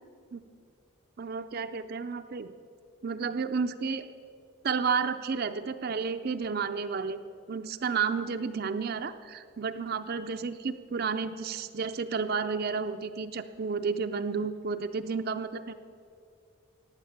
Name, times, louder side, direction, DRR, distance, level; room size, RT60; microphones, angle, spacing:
voice 1, 1.2-2.5 3.0-4.0 4.6-7.2 7.5-15.7, right 5 dB, 45° right, 8 dB, 0.5 m, -31 dB
15.5 x 9.9 x 7.4 m, 2.4 s
head